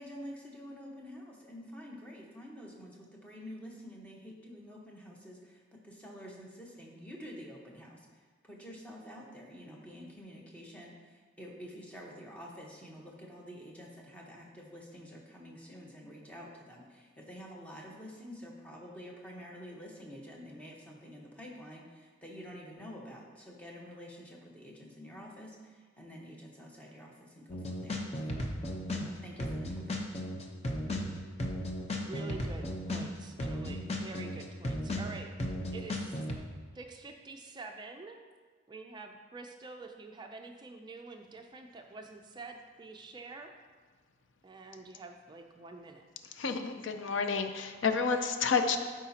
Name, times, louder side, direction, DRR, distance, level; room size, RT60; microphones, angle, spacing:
voice 1, 0.0-28.1 29.0-30.0, equal, 5° left, -2 dB, 1.1 m, -48 dB
sound 1, 27.5-29.1 29.4-36.3, left 1 dB, 35° left, 0.8 m, -35 dB
voice 2, 32.1-35.3 35.7-36.2 36.7-38.2 38.7-43.5 44.4-46.0, right 3 dB, 25° right, 4 dB, 0.4 m, -47 dB
voice 3, 46.4-48.8, left 5 dB, 75° left, 7 dB, 0.5 m, -30 dB
12.0 x 4.9 x 2.8 m, 1.5 s
head